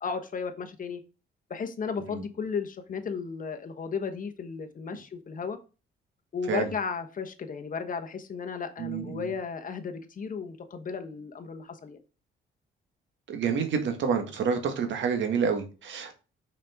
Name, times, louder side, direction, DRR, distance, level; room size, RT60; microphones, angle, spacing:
voice 1, 0.0-1.0 1.5-5.6 6.3-12.0, left 5 dB, 45° left, 7 dB, 1.1 m, -34 dB
voice 2, 8.8-9.3 13.3-16.1, right 6 dB, 70° right, 6 dB, 1.6 m, -28 dB
5.7 x 5.1 x 3.6 m, 0.32 s
cardioid pair, 90°, 20 cm